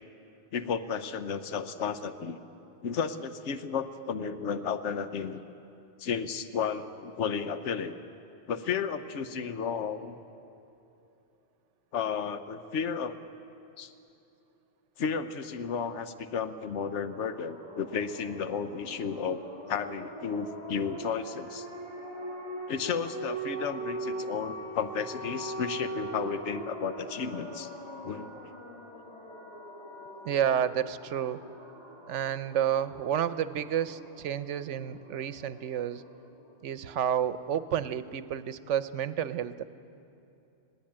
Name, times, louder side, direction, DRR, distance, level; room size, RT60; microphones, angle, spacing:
voice 1, 0.5-2.4 2.8-5.4 6.0-8.0 8.5-10.2 11.9-13.2 13.8-13.9 15.0-19.4 19.7-21.7 22.7-27.7 28.0-28.3, left 6 dB, 75° left, 10 dB, 1.1 m, -33 dB
sound 1, 17.1-36.5, right 1 dB, 35° left, 2.9 m, -41 dB
voice 2, 30.2-31.4 32.1-36.0 36.6-39.6, right 9 dB, 85° right, 13 dB, 1.0 m, -30 dB
21.0 x 17.0 x 8.7 m, 2.8 s
omnidirectional pair, 1.2 m